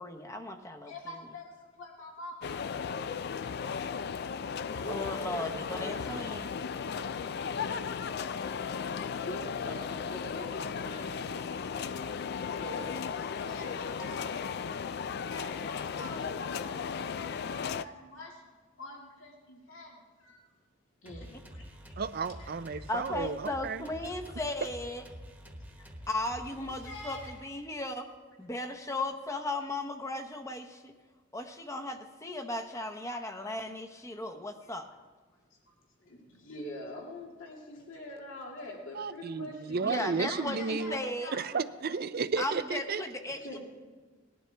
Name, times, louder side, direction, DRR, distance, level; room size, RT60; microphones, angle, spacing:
voice 1, 0.0-0.9 4.8-6.5 22.9-25.1 26.1-28.1 28.4-30.9 31.3-34.9 39.8-41.3 42.4-43.6, left 2 dB, 15° left, 5 dB, 0.9 m, -36 dB
voice 2, 0.8-1.5 1.8-2.4 4.8-5.9 7.4-7.9 8.9-11.4 11.7-12.0 12.6-13.0 13.4-14.6 15.0-18.3 18.8-20.4 21.0-21.6 22.4-22.8 24.3-24.4 26.5-26.6 26.8-27.3 36.1-41.5 43.4-43.6, left 1 dB, 80° left, -2 dB, 2.2 m, -45 dB
sound 1, 2.4-17.8, left 6 dB, 55° left, 0.3 m, -36 dB
sound 2, 21.1-27.8, equal, 5° right, 1.2 m, -48 dB
voice 3, 22.0-23.9 38.9-41.0 41.3-43.0, right 4 dB, 50° right, 13 dB, 0.5 m, -33 dB
19.5 x 12.0 x 3.4 m, 1.4 s
head